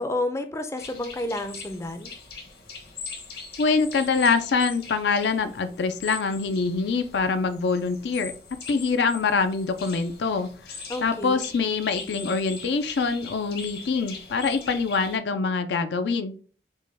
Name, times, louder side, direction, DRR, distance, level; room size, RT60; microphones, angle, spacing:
voice 1, 0.0-2.1 10.9-11.4, left 1 dB, 15° left, 6 dB, 0.4 m, -30 dB
sound 1, 0.8-15.2, left 5 dB, 60° left, 1.1 m, -41 dB
voice 2, 3.6-8.3 8.7-10.5 11.0-16.3, left 4 dB, 75° left, 10 dB, 0.4 m, -24 dB
5.2 x 2.2 x 3.3 m, 0.40 s
head